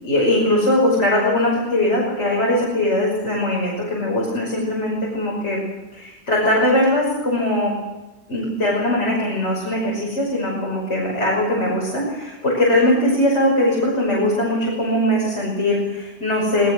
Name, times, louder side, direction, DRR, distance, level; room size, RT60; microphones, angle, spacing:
voice 1, 0.0-7.7 8.3-16.7, left 1 dB, 75° left, -4 dB, 6.2 m, -20 dB
26.0 x 19.5 x 6.4 m, 1.1 s
omnidirectional pair, 1.2 m